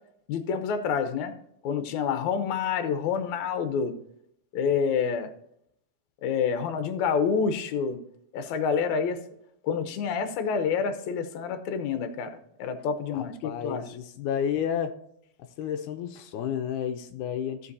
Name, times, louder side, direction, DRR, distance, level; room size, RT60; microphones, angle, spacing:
voice 1, 0.3-1.3 1.6-3.9 4.5-5.3 6.2-8.0 8.3-9.2 9.6-13.8, left 6 dB, 75° left, 8 dB, 2.2 m, -28 dB
voice 2, 13.1-15.0 15.6-17.7, left 8 dB, 90° left, 6 dB, 2.2 m, -31 dB
15.5 x 5.2 x 2.7 m, 0.71 s
omnidirectional pair, 3.5 m